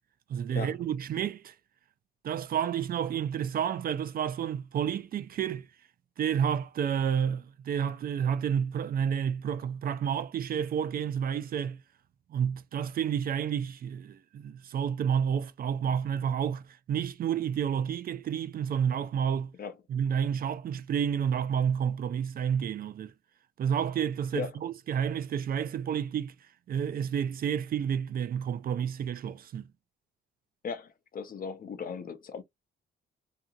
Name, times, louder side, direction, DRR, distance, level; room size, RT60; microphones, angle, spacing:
voice 1, 0.3-1.5 2.2-5.7 6.2-11.8 12.3-19.5 19.9-23.1 23.6-26.3 26.7-29.7, right 8 dB, 50° right, 0.4 m, -30 dB
voice 2, 30.6-32.4, left 6 dB, 45° left, 0.6 m, -37 dB
2.7 x 2.7 x 2.3 m
cardioid pair, 90°, 20 cm